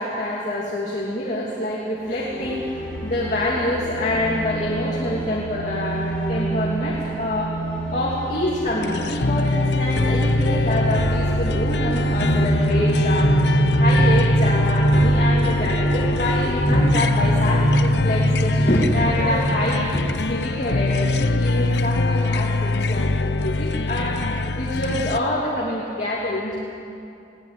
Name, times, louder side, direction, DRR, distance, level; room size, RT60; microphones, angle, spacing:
voice 1, 0.0-7.6 7.9-13.3 13.8-26.6, left 1 dB, 40° left, -5 dB, 3.0 m, -26 dB
sound 1, 2.0-18.1, right 2 dB, 5° left, 4.1 m, -25 dB
sound 2, 8.8-25.2, left 2 dB, 65° left, 0.7 m, -22 dB
sound 3, 12.9-20.8, right 1 dB, 15° right, 0.9 m, -25 dB
22.0 x 17.5 x 9.1 m, 2.5 s
head